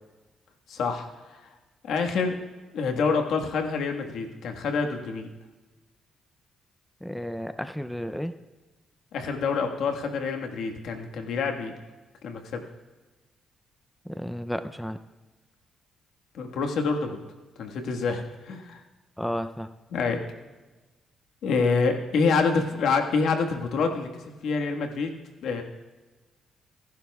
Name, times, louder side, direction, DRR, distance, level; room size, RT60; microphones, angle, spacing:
voice 1, 0.7-1.1 1.8-2.4 2.7-5.3 9.1-11.7 12.2-12.6 16.3-17.2 17.6-18.8 19.9-20.2 21.4-25.1 25.4-25.6, left 4 dB, 75° left, 3 dB, 1.5 m, -27 dB
voice 2, 7.0-8.3 14.1-15.0 19.2-19.7, equal, 5° left, 10 dB, 0.5 m, -32 dB
26.5 x 11.5 x 2.3 m, 1.2 s
cardioid pair, 90°, 0 cm